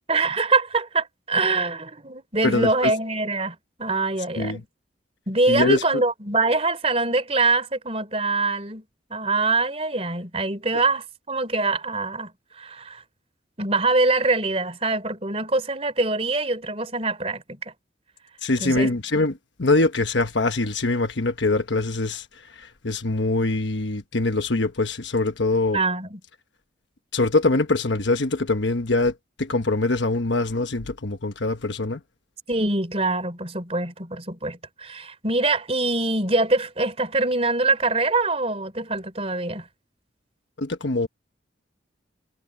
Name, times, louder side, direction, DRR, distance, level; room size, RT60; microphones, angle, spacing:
voice 1, 0.1-4.6 5.3-8.8 9.1-12.3 12.6-13.0 13.6-17.7 18.6-18.9 25.7-26.2 32.5-39.6, right 3 dB, 30° right, 3.4 m, -24 dB
voice 2, 2.4-2.9 4.4-4.6 5.5-6.0 18.4-19.3 19.6-25.8 27.1-32.0 40.6-41.1, left 2 dB, 75° left, 1.2 m, -23 dB
head